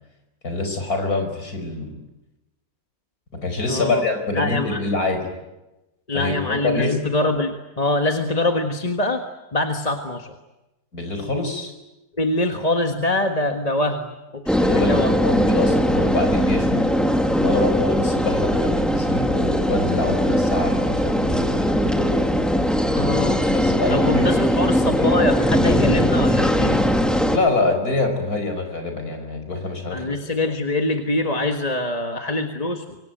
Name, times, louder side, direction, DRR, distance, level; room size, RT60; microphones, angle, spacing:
voice 1, 0.4-2.0 3.4-5.3 6.1-7.0 10.9-11.7 13.8-13.9 14.6-16.9 17.4-22.2 23.5-24.3 27.3-30.2, left 3 dB, 75° left, 6 dB, 5.6 m, -25 dB
voice 2, 3.7-4.0 4.3-4.8 6.1-9.2 9.5-10.3 12.2-14.1 14.3-15.1 22.9-23.4 23.9-26.8 29.9-33.0, left 2 dB, 25° left, 4 dB, 1.6 m, -24 dB
sound 1, 14.5-27.4, equal, ahead, 2.1 m, -20 dB
26.0 x 25.0 x 9.2 m, 1.0 s
omnidirectional pair, 1.6 m